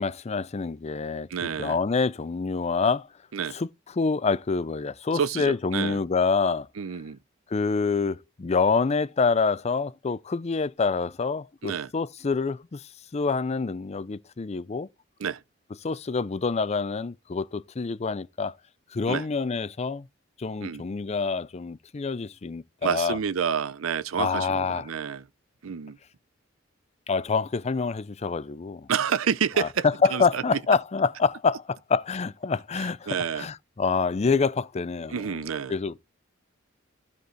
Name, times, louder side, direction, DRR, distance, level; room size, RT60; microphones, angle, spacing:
voice 1, 0.0-3.1 3.5-3.7 3.9-6.7 7.5-14.9 15.8-18.6 18.9-20.1 20.4-23.2 24.2-24.9 27.1-28.9 29.6-35.4 35.7-36.0, left 4 dB, 35° left, 0.5 m, -27 dB
voice 2, 1.3-1.8 3.3-3.6 5.1-6.0 6.8-7.2 11.6-11.9 15.2-15.4 19.1-19.2 20.6-20.8 22.8-25.2 25.6-26.0 28.9-29.8 30.1-30.4 32.8-33.5 35.1-35.7, right 7 dB, 90° right, 0.6 m, -29 dB
15.0 x 5.2 x 3.2 m
head